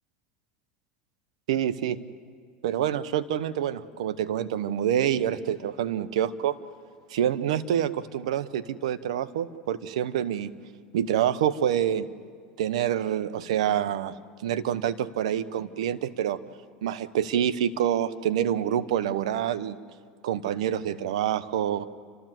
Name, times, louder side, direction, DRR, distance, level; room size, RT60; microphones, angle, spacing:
voice 1, 1.5-2.0 2.6-6.6 7.1-10.5 10.9-12.1 12.6-16.4 16.8-19.8 20.2-21.8, right 10 dB, 85° right, 13 dB, 0.9 m, -27 dB
30.0 x 13.5 x 7.7 m, 2.1 s
supercardioid pair, 115°, 3 cm